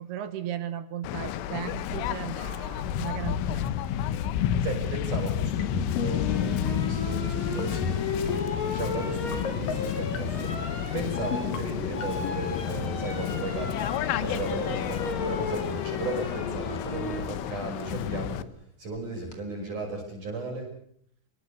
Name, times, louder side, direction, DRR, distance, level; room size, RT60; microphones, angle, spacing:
voice 1, 0.0-3.7, right 10 dB, 70° right, 12 dB, 2.7 m, -36 dB
Waves surf, 1.0-18.4, left 10 dB, 75° left, 3.7 m, -31 dB
voice 2, 4.6-10.5 10.9-13.7 14.2-18.4 18.8-20.7, right 2 dB, 40° right, 0 dB, 7.1 m, -35 dB
sound 1, 5.6-6.1 6.4-6.7 7.5-8.0 8.3-8.6 9.3-9.7 10.1-10.5 11.2-11.6 12.0-12.3, left 4 dB, 50° left, 3.5 m, -32 dB
sound 2, 6.1-17.3 18.9-19.4, left 3 dB, 25° left, 4.3 m, -36 dB
29.0 x 23.0 x 6.8 m, 0.65 s
omnidirectional pair, 5.9 m